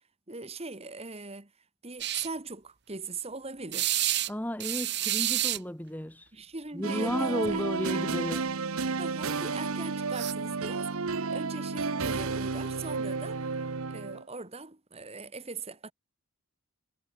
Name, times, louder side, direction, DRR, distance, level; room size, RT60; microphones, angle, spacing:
voice 1, 0.3-1.5 1.8-3.9 6.3-7.7 9.0-13.5 13.9-15.9, right 3 dB, 30° right, 1.9 m, -40 dB
sound 1, 2.0-2.3 3.7-4.3 4.6-5.6 7.0-7.1 7.4-7.6 10.1-10.3, right 13 dB, 50° right, 1.8 m, -29 dB
voice 2, 4.3-6.3 6.7-8.5, equal, 10° left, 1.9 m, -33 dB
sound 2, 6.8-14.2, right 4 dB, 80° right, 1.0 m, -32 dB
head